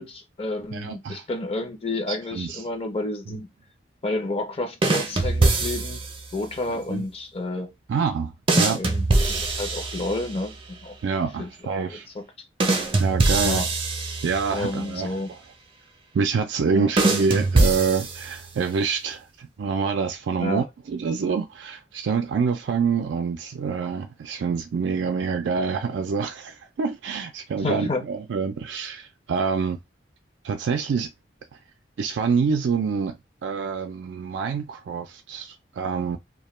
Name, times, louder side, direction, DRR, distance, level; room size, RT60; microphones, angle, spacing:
voice 1, 0.0-3.5 4.0-6.0 6.3-7.7 8.5-11.0 11.4-11.5 11.9-12.5 13.4-13.7 14.5-15.3 16.7-16.9 20.4-20.6 27.6-28.1, left 2 dB, 35° left, 0.5 m, -30 dB
voice 2, 0.7-1.2 2.1-2.6 6.7-7.0 7.9-8.3 8.6-8.8 11.0-12.1 13.0-13.7 14.2-15.4 16.1-29.8 30.4-31.1 32.0-33.2 33.4-36.2, right 5 dB, 90° right, 0.3 m, -26 dB
sound 1, 4.8-6.2 8.5-10.4 12.6-14.7 17.0-18.6, right 2 dB, 30° right, 0.5 m, -23 dB
2.2 x 2.2 x 3.0 m
head